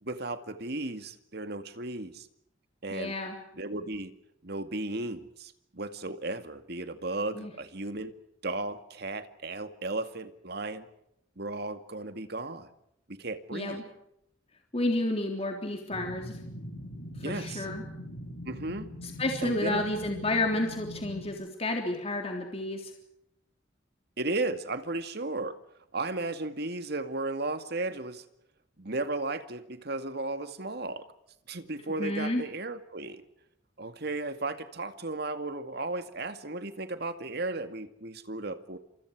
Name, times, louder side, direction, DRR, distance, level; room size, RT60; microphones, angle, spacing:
voice 1, 0.0-2.3 2.8-3.1 3.6-4.1 4.4-8.1 8.4-10.9 11.4-12.7 13.1-13.8 17.2-17.7 18.4-18.9 19.4-19.8 24.2-25.6 25.9-28.2 28.8-31.1 31.5-33.2 33.8-38.8, right 2 dB, 55° right, 9 dB, 2.2 m, -35 dB
voice 2, 2.9-3.4 7.4-7.5 13.5-13.8 14.7-16.4 17.2-17.8 19.0-22.9 32.0-32.4, left 2 dB, 30° left, 3 dB, 3.5 m, -31 dB
sound 1, 15.9-21.3, equal, 75° left, 4.7 m, -42 dB
29.5 x 27.5 x 4.9 m, 0.76 s
head